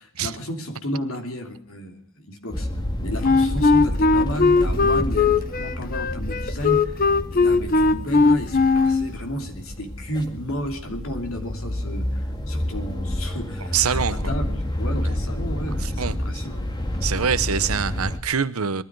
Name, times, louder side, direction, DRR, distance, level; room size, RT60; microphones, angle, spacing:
voice 1, 0.0-2.7 3.0-7.0 7.3-16.7, equal, 75° left, 2.9 m, -32 dB
sound 1, 2.5-18.2, left 1 dB, 20° left, 1.9 m, -29 dB
Wind instrument woodwind instrument, 3.2-9.1, left 3 dB, 40° left, 0.9 m, -19 dB
voice 2, 13.7-14.2 15.8-16.4 17.0-18.8, right 7 dB, 85° right, 0.9 m, -24 dB
21.5 x 12.5 x 4.7 m
head